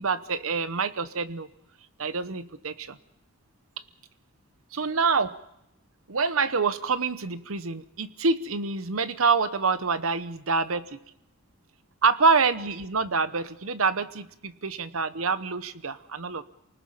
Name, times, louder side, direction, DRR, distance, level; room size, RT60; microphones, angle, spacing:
voice 1, 0.0-1.5 2.0-3.0 4.7-5.4 6.1-11.0 12.0-16.4, right 4 dB, 75° right, 13 dB, 1.0 m, -26 dB
28.0 x 19.5 x 5.7 m, 0.80 s
head